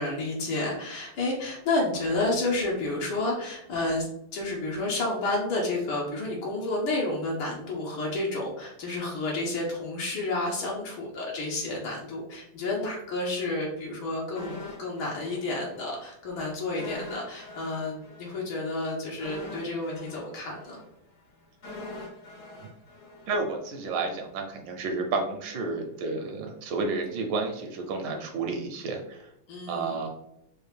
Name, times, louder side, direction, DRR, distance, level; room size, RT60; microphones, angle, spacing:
voice 1, 0.0-4.1 4.3-20.8 29.5-30.0, left 2 dB, 75° left, -3 dB, 1.6 m, -30 dB
sound 1, 14.4-16.0 16.3-16.4 16.8-23.9 24.2-24.3, left 2 dB, 50° left, 0.7 m, -43 dB
voice 2, 23.3-29.3 29.7-30.1, right 3 dB, 75° right, 3 dB, 1.2 m, -31 dB
4.9 x 2.4 x 3.2 m, 0.80 s
omnidirectional pair, 2.3 m